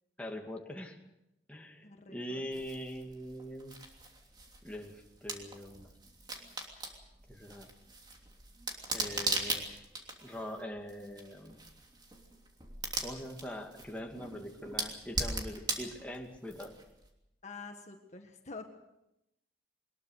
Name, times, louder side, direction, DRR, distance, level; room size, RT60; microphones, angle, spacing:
voice 1, 0.2-1.0 1.5-3.8 4.6-5.9 7.3-7.7 8.9-9.8 10.2-11.6 13.0-16.7, equal, 10° left, 1 dB, 2.4 m, -43 dB
voice 2, 1.8-2.4 17.4-18.7, left 4 dB, 40° left, 4 dB, 1.7 m, -47 dB
sound 1, 2.5-17.1, right 2 dB, 25° right, 3.0 m, -40 dB
22.5 x 21.0 x 6.6 m, 0.88 s
head